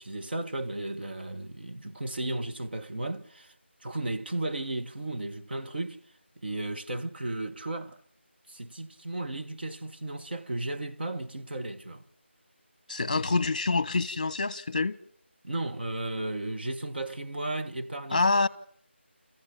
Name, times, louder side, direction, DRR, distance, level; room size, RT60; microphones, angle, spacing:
voice 1, 0.0-3.5 3.8-6.0 6.4-8.0 8.5-12.0 13.0-13.3 15.4-18.3, right 2 dB, 55° right, 1.6 m, -34 dB
voice 2, 12.9-15.0 18.1-18.5, left 3 dB, 35° left, 1.1 m, -26 dB
27.5 x 15.0 x 8.9 m
figure-of-eight pair, 175°, 7 cm